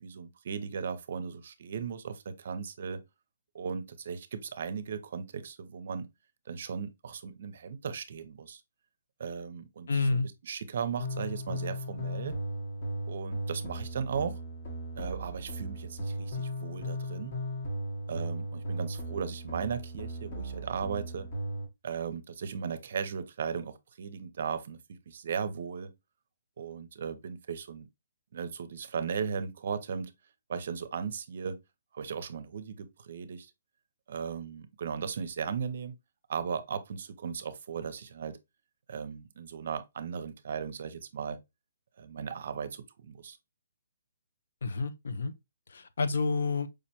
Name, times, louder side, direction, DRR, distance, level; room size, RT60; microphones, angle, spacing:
voice 1, 0.0-3.0 3.5-6.1 6.5-8.6 9.2-12.4 13.1-14.4 15.0-17.4 18.1-21.3 21.8-25.9 26.6-27.9 28.3-30.1 30.5-31.6 31.9-33.5 34.1-35.9 36.3-38.4 38.9-41.4 42.0-43.4, right 6 dB, 55° right, 0.5 m, -37 dB
voice 2, 9.9-10.3 44.6-45.3 45.7-46.7, left 3 dB, 70° left, 0.5 m, -29 dB
sound 1, 11.0-21.6, equal, 40° left, 0.9 m, -37 dB
4.8 x 2.1 x 2.8 m
hypercardioid pair, 165°, 0 cm